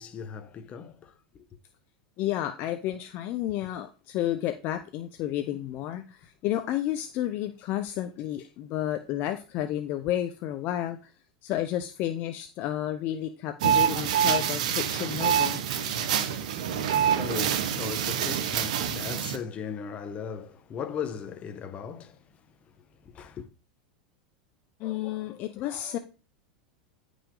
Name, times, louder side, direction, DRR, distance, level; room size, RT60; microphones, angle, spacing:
voice 1, 0.0-1.4 16.6-22.2 23.0-23.5, left 7 dB, 30° left, 1.2 m, -38 dB
voice 2, 2.2-11.1 11.4-15.6 24.8-26.0, left 12 dB, 50° left, 0.7 m, -31 dB
sound 1, 13.6-19.4, right 9 dB, 70° right, 1.1 m, -26 dB
10.0 x 5.0 x 3.9 m
hypercardioid pair, 115°, 4 cm